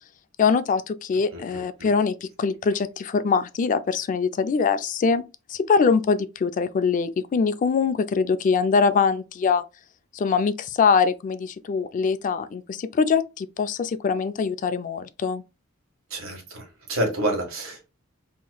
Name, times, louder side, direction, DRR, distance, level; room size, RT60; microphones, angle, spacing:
voice 1, 0.4-9.6 10.1-15.4, left 5 dB, 40° left, 0.3 m, -23 dB
voice 2, 16.1-17.9, right 1 dB, 75° right, 1.6 m, -28 dB
3.9 x 2.9 x 2.2 m
head